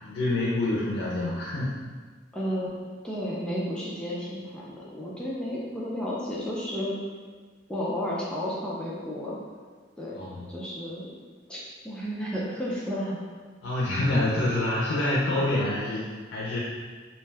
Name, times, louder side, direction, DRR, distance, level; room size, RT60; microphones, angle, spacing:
voice 1, 0.0-1.7 10.2-10.5 13.6-16.6, left 1 dB, 90° left, -7 dB, 0.5 m, -27 dB
voice 2, 2.3-2.7 3.0-6.9 7.7-9.4 10.0-11.1 11.5-13.2, equal, 5° left, -7 dB, 0.4 m, -32 dB
2.6 x 2.2 x 3.2 m, 1.5 s
head